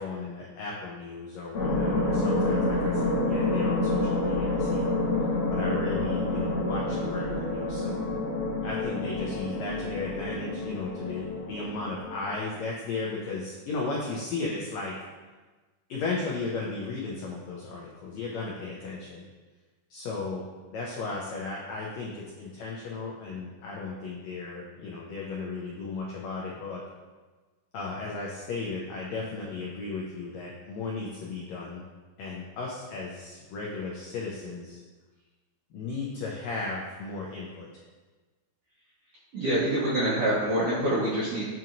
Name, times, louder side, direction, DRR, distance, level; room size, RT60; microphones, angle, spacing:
voice 1, 0.0-4.9 5.5-8.1 8.6-14.9 15.9-19.2 19.9-20.4 20.7-26.8 27.7-31.8 32.2-34.8 35.7-37.7, left 3 dB, 90° left, -3 dB, 1.5 m, -35 dB
sound 1, 1.5-12.3, left 2 dB, 60° left, 1.8 m, -28 dB
voice 2, 39.3-41.5, right 1 dB, 85° right, -9 dB, 1.3 m, -26 dB
7.0 x 2.8 x 2.5 m, 1.3 s
omnidirectional pair, 3.7 m